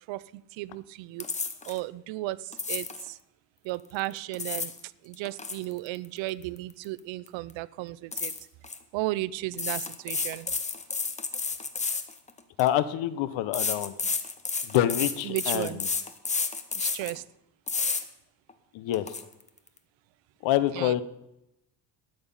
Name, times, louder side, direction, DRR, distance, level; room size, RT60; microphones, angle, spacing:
voice 1, 0.1-1.3 1.6-3.2 3.6-8.3 8.9-10.5 15.2-15.8 16.7-17.2 20.7-21.0, right 17 dB, 85° right, 19 dB, 0.6 m, -35 dB
sound 1, 1.2-1.8 2.5-3.1 4.1-4.8 5.1-7.0 7.3-7.5 8.1-8.8 9.5-12.7 13.5-17.2 17.7-18.0 18.5-18.6 18.9-19.2, left 4 dB, 15° left, 0.8 m, -31 dB
voice 2, 12.6-13.9 14.6-15.8 18.7-19.1 20.4-21.0, left 12 dB, 85° left, 14 dB, 1.1 m, -26 dB
13.0 x 9.6 x 5.5 m, 0.85 s
cardioid pair, 150°, 44 cm